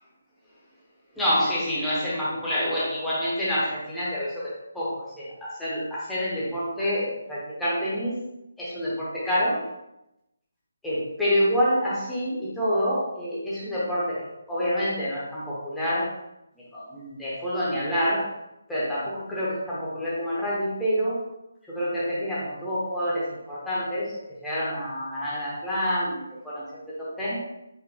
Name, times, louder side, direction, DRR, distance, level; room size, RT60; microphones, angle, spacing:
voice 1, 1.2-8.1 8.6-9.6 10.8-16.1 16.7-18.3 18.7-21.2 21.7-24.1 24.4-26.6 27.0-27.4, equal, 5° left, -10 dB, 0.7 m, -27 dB
4.1 x 2.5 x 3.4 m, 0.89 s
hypercardioid pair, 170°, 0 cm